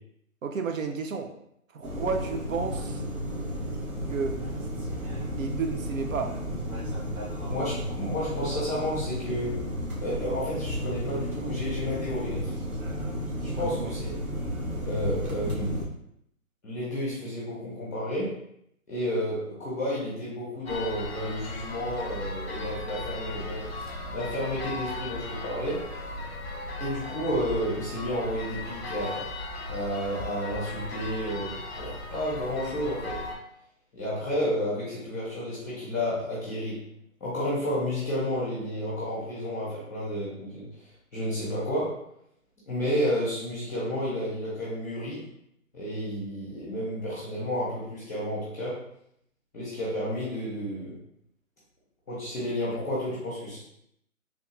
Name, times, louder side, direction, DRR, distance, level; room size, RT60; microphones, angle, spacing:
voice 1, 0.4-1.3 1.7-3.0 4.1-4.4 5.3-6.3 13.3-13.9, right 5 dB, 65° right, 4 dB, 0.5 m, -32 dB
sound 1, 1.8-15.9, equal, 85° right, 1.3 m, -33 dB
voice 2, 7.5-9.6 10.0-12.5 13.6-14.2 14.8-15.8 16.6-18.3 18.9-23.6 24.1-25.8 26.8-29.3 29.7-33.2 33.9-36.8 37.2-40.7 41.1-42.0 42.7-45.2 45.7-48.7 49.5-51.0 52.1-53.6, equal, 10° left, -7 dB, 0.8 m, -31 dB
sound 2, 20.7-33.4, left 2 dB, 50° left, 0.5 m, -37 dB
3.4 x 2.4 x 3.0 m, 0.74 s
hypercardioid pair, 175°, 42 cm